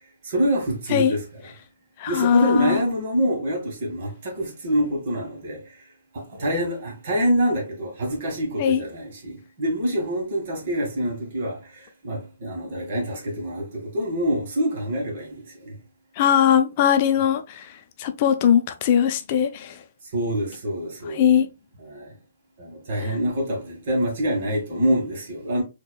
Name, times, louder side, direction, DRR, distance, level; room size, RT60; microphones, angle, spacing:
voice 1, 0.2-1.2 2.1-5.8 6.1-15.8 20.1-21.3 21.8-22.1 22.6-25.6, equal, 55° right, 1.7 m, -26 dB
voice 2, 2.0-2.8 8.6-8.8 16.2-19.8 21.1-21.5 23.0-23.2, left 9 dB, 40° left, 0.5 m, -20 dB
4.5 x 2.9 x 2.3 m
hypercardioid pair, 135°, 0 cm